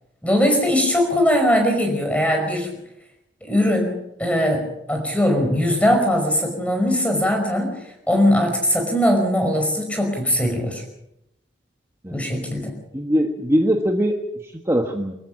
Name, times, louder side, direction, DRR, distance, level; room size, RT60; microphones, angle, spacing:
voice 1, 0.2-2.7 3.4-3.9 4.2-4.6 4.9-7.7 8.1-10.8 12.1-12.7, equal, 5° left, 4 dB, 5.3 m, -20 dB
voice 2, 12.9-14.1 14.4-15.1, equal, 15° right, 3 dB, 1.4 m, -21 dB
25.0 x 14.5 x 7.5 m, 0.87 s
head